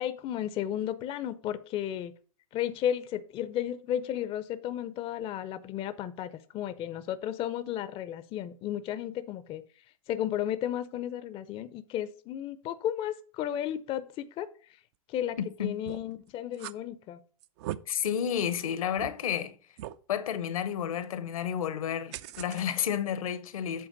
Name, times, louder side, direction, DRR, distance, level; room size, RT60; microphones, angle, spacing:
voice 1, 0.0-2.1 2.5-9.6 10.1-14.5 15.1-17.2, left 11 dB, 30° left, 0.5 m, -33 dB
sound 1, 15.9-16.1 16.5-16.8 17.4-17.8 18.4-18.5 19.0-19.1 19.8-20.0 22.1-22.6, right 13 dB, 55° right, 0.5 m, -38 dB
voice 2, 17.9-19.5 20.1-23.9, left 9 dB, 75° left, 0.9 m, -31 dB
7.9 x 3.5 x 6.3 m
hypercardioid pair, 105°, 18 cm